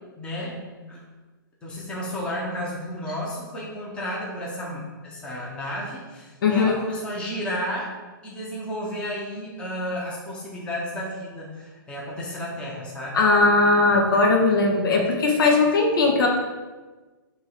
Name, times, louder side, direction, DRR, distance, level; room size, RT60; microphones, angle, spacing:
voice 1, 0.2-0.5 0.9-1.0 1.6-7.9 8.2-13.2, equal, 10° left, -4 dB, 0.9 m, -32 dB
voice 2, 6.4-6.8 13.1-16.3, left 3 dB, 70° left, 0 dB, 1.5 m, -19 dB
7.4 x 3.1 x 4.6 m, 1.3 s
hypercardioid pair, 165°, 12 cm